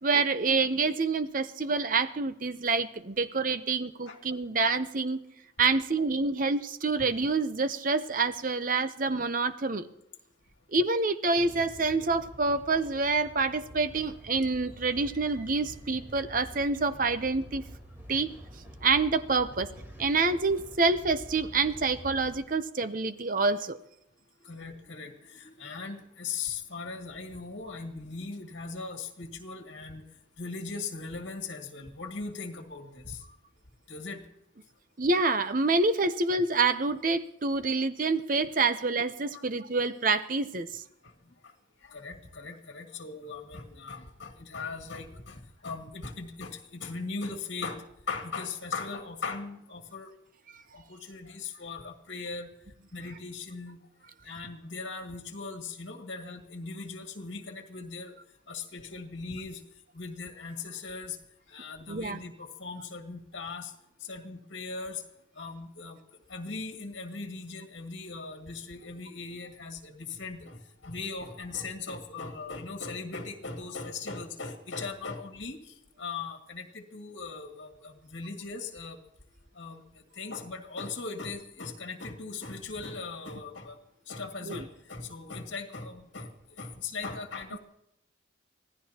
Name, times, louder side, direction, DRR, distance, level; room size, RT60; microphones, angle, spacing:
voice 1, 0.0-5.2 5.6-9.9 10.7-17.6 18.1-18.4 18.8-19.7 20.0-23.8 35.0-40.8 61.9-62.2 84.5-84.6, right 3 dB, 45° right, 11 dB, 0.7 m, -27 dB
sound 1, 11.3-22.3, equal, 10° right, 3.6 m, -47 dB
voice 2, 24.4-30.1 30.4-33.2 33.9-34.2 37.5-37.7 39.3-39.5 41.0-41.1 41.4-41.5 41.8-50.1 50.7-52.5 52.9-53.8 54.2-58.1 58.5-59.6 59.9-61.2 61.5-63.7 64.0-65.0 65.4-66.0 66.3-79.0 79.5-83.8 84.1-87.6, left 4 dB, 70° left, 3 dB, 2.0 m, -39 dB
25.5 x 16.5 x 2.9 m, 0.82 s
head